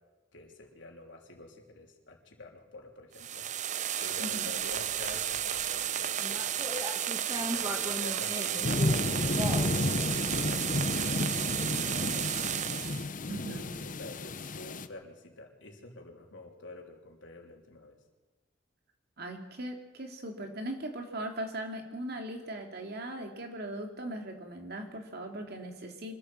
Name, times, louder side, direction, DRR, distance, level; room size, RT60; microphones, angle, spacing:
voice 1, 0.3-3.5 4.0-6.9 7.3-11.3 11.6-12.9 13.5-18.0, left 2 dB, 80° left, 2 dB, 3.3 m, -48 dB
sound 1, 3.1-13.1, right 10 dB, 40° right, 0.6 m, -33 dB
voice 2, 4.2-4.5 13.3-13.7 19.2-26.2, right 1 dB, 60° right, 3 dB, 3.0 m, -39 dB
sound 2, 4.6-5.8 6.2-9.8, equal, 20° right, 2.0 m, -38 dB
sound 3, 8.6-14.9, left 2 dB, 45° left, 0.9 m, -32 dB
24.5 x 14.0 x 7.6 m, 1.2 s
head